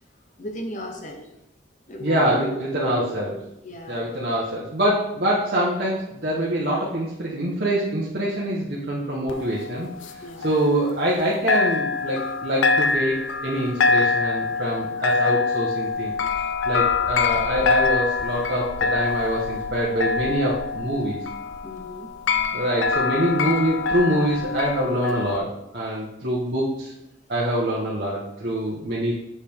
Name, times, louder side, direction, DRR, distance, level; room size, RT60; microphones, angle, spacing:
voice 1, 0.4-1.3 1.9-3.1 3.6-4.1 10.2-10.5 21.6-22.1 22.9-23.0, left 1 dB, 40° left, 3 dB, 0.8 m, -35 dB
voice 2, 2.0-3.3 3.9-16.1 16.7-21.2 22.5-26.9 27.3-29.1, right 1 dB, 55° right, -5 dB, 1.0 m, -25 dB
sound 1, 9.3-11.2 11.5-25.4, left 4 dB, 80° left, 0.5 m, -25 dB
7.1 x 4.9 x 3.5 m, 0.86 s
head